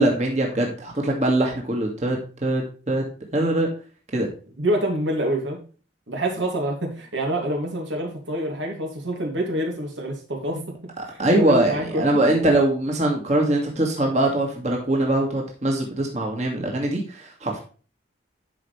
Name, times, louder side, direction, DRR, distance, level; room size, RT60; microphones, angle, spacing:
voice 1, 0.0-2.6 2.9-3.0 3.3-3.7 4.1-4.3 11.2-17.6, right 1 dB, 35° right, 0 dB, 2.1 m, -22 dB
voice 2, 4.6-5.6 6.1-12.0, right 1 dB, 80° right, 1 dB, 2.8 m, -27 dB
12.0 x 5.2 x 3.3 m, 0.36 s
head